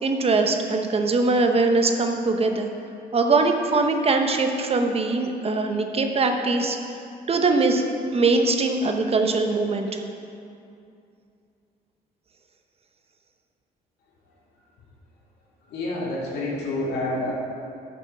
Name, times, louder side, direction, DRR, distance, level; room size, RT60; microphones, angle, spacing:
voice 1, 0.0-2.7 3.1-6.8 7.3-7.8 8.1-10.0, right 3 dB, 35° right, 5 dB, 0.8 m, -22 dB
voice 2, 15.6-17.3, left 2 dB, 80° left, -4 dB, 2.4 m, -28 dB
9.0 x 7.0 x 4.7 m, 2.5 s
cardioid pair, 90°, 17 cm